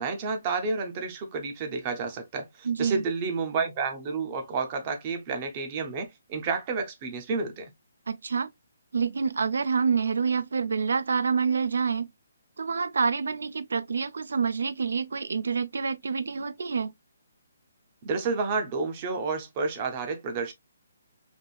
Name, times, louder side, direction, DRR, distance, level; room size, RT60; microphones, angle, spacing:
voice 1, 0.0-7.7 18.0-20.5, right 4 dB, 20° right, 0.6 m, -30 dB
voice 2, 2.6-3.0 8.1-8.5 8.9-12.1 12.6-16.9, right 5 dB, 75° right, 0.4 m, -27 dB
3.2 x 2.4 x 2.3 m
hypercardioid pair, 175°, 0 cm